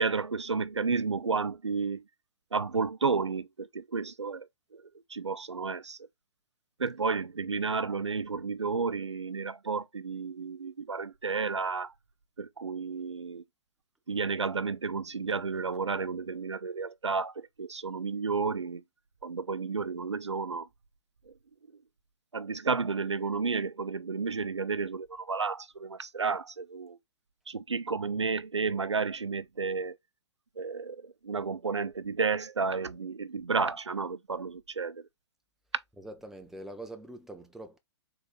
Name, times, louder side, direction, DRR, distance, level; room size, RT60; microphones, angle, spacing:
voice 1, 0.0-2.0 2.5-4.5 4.7-4.8 5.1-6.0 6.8-11.9 12.4-13.4 14.1-18.8 19.2-20.7 22.3-27.0 27.5-30.0 30.6-35.0, right 4 dB, 85° right, 0.4 m, -32 dB
voice 2, 36.0-37.8, right 1 dB, ahead, 0.5 m, -44 dB
3.7 x 2.6 x 3.7 m
figure-of-eight pair, 110°, 14 cm